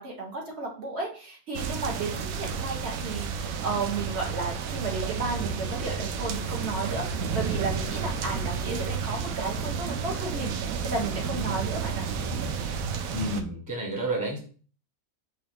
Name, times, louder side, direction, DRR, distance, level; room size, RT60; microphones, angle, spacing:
voice 1, 0.0-10.6 10.8-12.0, right 3 dB, 50° right, -1 dB, 1.2 m, -33 dB
sound 1, 1.5-13.4, right 6 dB, 75° right, 1.0 m, -31 dB
voice 2, 13.1-14.4, right 1 dB, 15° left, -2 dB, 0.7 m, -30 dB
4.9 x 2.5 x 4.3 m, 0.41 s
omnidirectional pair, 1.5 m